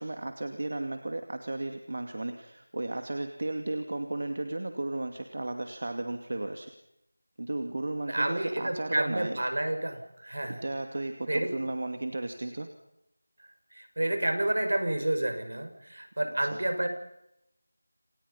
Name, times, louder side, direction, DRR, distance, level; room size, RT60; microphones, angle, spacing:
voice 1, 0.0-6.7 7.4-9.4 10.5-12.7 16.4-16.5, right 2 dB, 45° right, 6 dB, 2.4 m, -34 dB
voice 2, 8.1-10.6 11.3-11.5 13.7-16.9, right 1 dB, 65° right, 7 dB, 6.5 m, -30 dB
29.0 x 26.0 x 5.7 m, 0.83 s
figure-of-eight pair, 175°, 0 cm